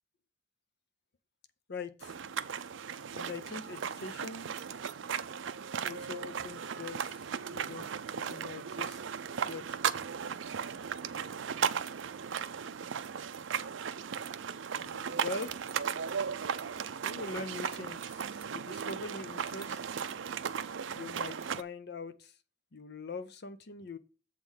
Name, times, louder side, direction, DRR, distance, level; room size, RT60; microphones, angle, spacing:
voice 1, 1.7-2.1 3.1-4.5 5.8-7.2 7.5-9.0 9.4-10.1 14.8-15.6 17.0-19.8 20.9-22.3 22.7-24.0, left 3 dB, 60° left, 0.7 m, -43 dB
sound 1, 2.0-21.6, right 7 dB, 70° right, 0.5 m, -36 dB
7.6 x 3.7 x 6.3 m
head